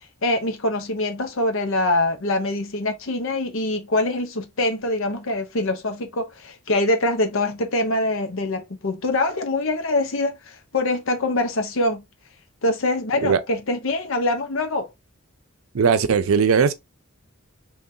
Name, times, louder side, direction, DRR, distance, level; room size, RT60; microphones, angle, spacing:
voice 1, 0.2-12.0 12.6-14.9, left 2 dB, 70° left, 0.9 m, -24 dB
voice 2, 15.7-16.7, right 6 dB, 80° right, 0.5 m, -18 dB
3.8 x 3.0 x 2.8 m
head